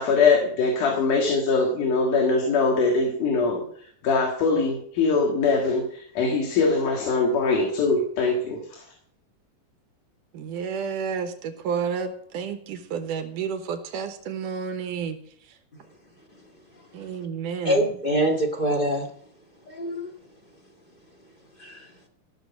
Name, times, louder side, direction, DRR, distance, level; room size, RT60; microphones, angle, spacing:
voice 1, 0.0-3.6 4.0-8.8, left 4 dB, 75° left, 1 dB, 3.2 m, -22 dB
voice 2, 10.3-15.2 16.9-17.8, right 6 dB, 80° right, 8 dB, 2.6 m, -30 dB
voice 3, 17.6-19.1 19.7-20.1 21.6-21.9, equal, 25° left, 0 dB, 1.3 m, -24 dB
15.5 x 6.5 x 7.2 m, 0.63 s
omnidirectional pair, 3.7 m